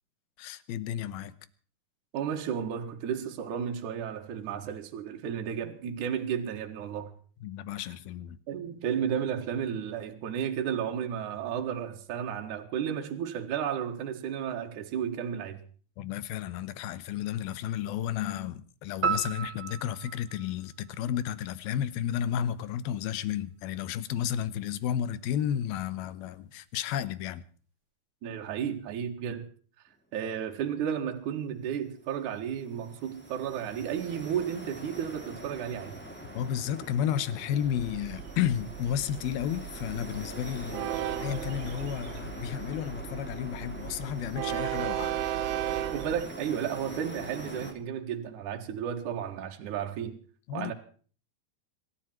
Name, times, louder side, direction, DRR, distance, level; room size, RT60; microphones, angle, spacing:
voice 1, 0.4-1.3 7.4-8.4 16.0-27.4 36.3-40.9 41.2-45.2 50.5-50.7, left 10 dB, 75° left, 2.7 m, -32 dB
voice 2, 2.1-7.1 8.5-15.6 28.2-29.5 30.1-36.0 45.9-50.2 50.5-50.7, right 8 dB, 55° right, 2.8 m, -33 dB
sound 1, 19.0-21.5, right 6 dB, 35° right, 2.5 m, -34 dB
sound 2, 32.1-47.7, equal, 5° left, 2.0 m, -44 dB
Train, 37.6-46.2, right 13 dB, 90° right, 3.1 m, -36 dB
25.0 x 13.0 x 4.4 m
omnidirectional pair, 4.7 m